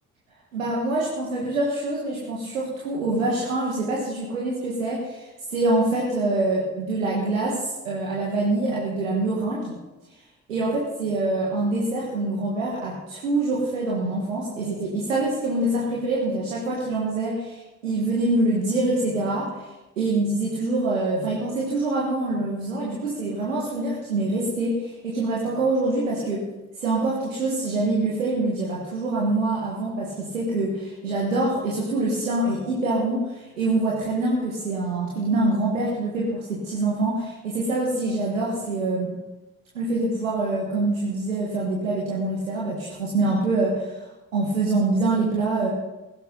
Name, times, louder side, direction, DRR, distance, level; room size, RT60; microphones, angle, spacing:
voice 1, 0.5-9.7 10.5-19.5 20.0-26.5 26.8-39.2 39.7-44.0 44.3-45.7, right 2 dB, 85° right, -4 dB, 1.7 m, -25 dB
15.5 x 13.5 x 4.0 m, 1.1 s
figure-of-eight pair, 40°, 39 cm